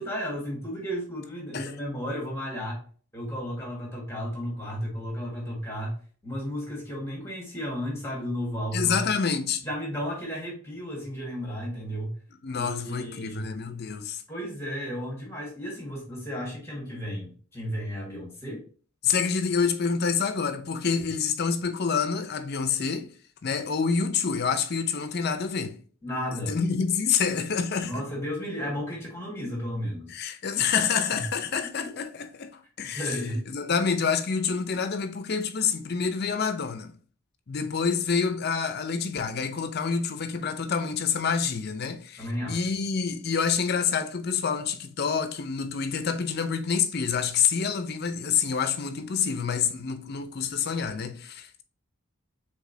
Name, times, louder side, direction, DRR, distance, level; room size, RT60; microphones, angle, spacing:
voice 1, 0.0-2.8 3.1-6.0 6.2-9.0 9.6-12.1 12.5-13.4 14.3-18.6 26.0-26.6 27.8-30.2 31.1-31.2 31.8-31.9 32.9-33.5 42.2-42.6, equal, 10° left, 1.5 m, -33 dB
voice 2, 8.7-9.6 12.4-14.2 19.0-23.1 23.4-25.8 26.3-28.1 30.1-33.1 33.5-36.9 37.5-51.6, left 6 dB, 45° left, 0.5 m, -27 dB
5.1 x 3.6 x 2.6 m
head